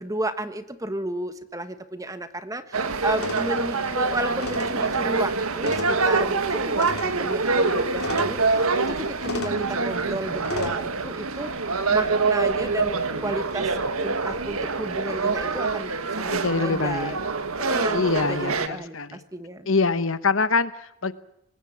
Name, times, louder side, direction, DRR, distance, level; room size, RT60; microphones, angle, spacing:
voice 1, 0.0-11.5 11.9-17.2 17.6-19.7, right 1 dB, 15° right, 10 dB, 1.3 m, -32 dB
sound 1, 2.7-18.7, right 4 dB, 75° right, 1.7 m, -25 dB
sound 2, 3.1-10.7, left 3 dB, 80° left, 3.4 m, -37 dB
voice 2, 16.3-17.2 17.9-19.2 19.7-21.1, left 4 dB, 60° left, 13 dB, 1.1 m, -24 dB
24.5 x 20.0 x 7.4 m, 0.77 s
head